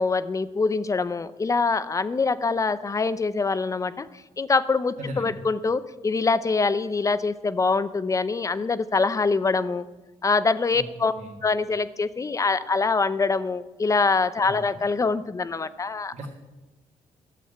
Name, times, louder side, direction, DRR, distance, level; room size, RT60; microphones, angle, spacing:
voice 1, 0.0-9.8 10.2-11.1 11.4-16.1, left 4 dB, 25° left, 15 dB, 0.6 m, -24 dB
voice 2, 5.0-5.3 10.7-10.8 11.1-11.3 14.6-14.7 16.1-16.3, right 1 dB, 75° right, -3 dB, 2.2 m, -36 dB
12.5 x 7.7 x 8.6 m, 1.1 s
cardioid pair, 110°, 12 cm